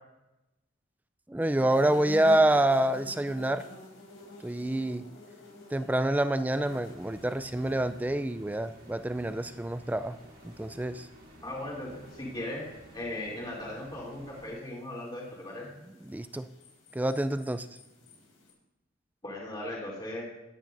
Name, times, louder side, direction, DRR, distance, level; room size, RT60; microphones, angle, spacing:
voice 1, 1.3-3.6 4.4-5.0 5.7-10.2 10.4-11.1 16.0-16.5 16.9-17.7, right 1 dB, 10° right, 12 dB, 0.3 m, -27 dB
sound 1, 1.4-18.5, left 1 dB, 90° left, 4.6 m, -50 dB
sound 2, 6.5-14.5, right 1 dB, 45° right, 2.1 m, -53 dB
voice 2, 11.4-12.7 12.9-15.6 19.2-20.3, left 1 dB, 25° left, -4 dB, 2.9 m, -38 dB
16.0 x 10.5 x 2.6 m, 0.96 s
head